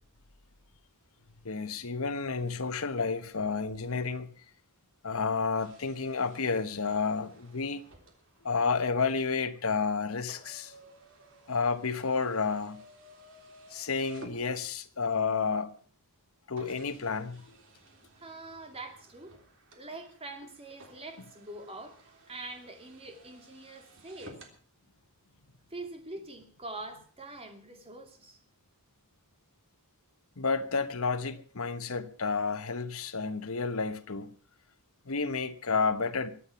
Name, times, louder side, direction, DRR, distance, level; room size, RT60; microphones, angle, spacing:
voice 1, 1.4-4.3 5.0-7.8 8.4-10.7 11.5-12.8 13.7-15.7 16.5-17.4 30.4-34.3 35.1-36.3, left 4 dB, 70° left, 1.2 m, -30 dB
sound 1, 5.6-15.1 15.8-15.9 16.6-24.6, right 2 dB, 60° right, 3.4 m, -56 dB
voice 2, 18.1-19.4 19.8-24.4 25.7-28.4, right 2 dB, 25° right, 2.5 m, -44 dB
22.5 x 8.7 x 5.8 m
head